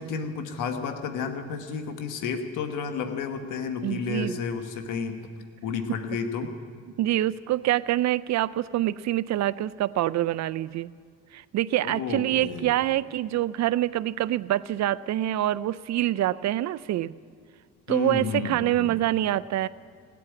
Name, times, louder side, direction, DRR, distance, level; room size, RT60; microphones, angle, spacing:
voice 1, 0.0-5.2 5.6-6.5 11.8-12.7 17.9-18.9, left 6 dB, 90° left, 7 dB, 1.3 m, -31 dB
voice 2, 3.8-4.4 7.0-10.9 11.3-17.1 17.9-19.7, right 14 dB, 65° right, 16 dB, 0.4 m, -26 dB
17.5 x 8.5 x 9.7 m, 2.2 s
cardioid pair, 90°, 30 cm